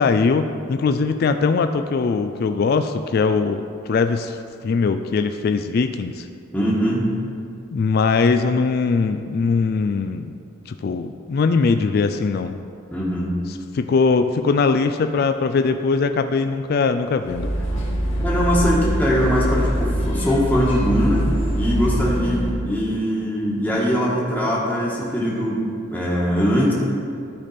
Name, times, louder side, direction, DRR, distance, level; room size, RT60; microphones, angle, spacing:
voice 1, 0.0-6.3 7.7-10.3 10.7-12.6 13.7-17.5, left 4 dB, 50° left, 8 dB, 0.3 m, -21 dB
voice 2, 6.5-7.1 12.9-13.3 18.2-21.3 21.5-25.6 25.9-26.7, equal, 10° left, -6 dB, 1.4 m, -21 dB
sound 1, 17.3-22.5, equal, 80° left, 2.2 m, -23 dB
13.5 x 5.1 x 4.2 m, 2.4 s
head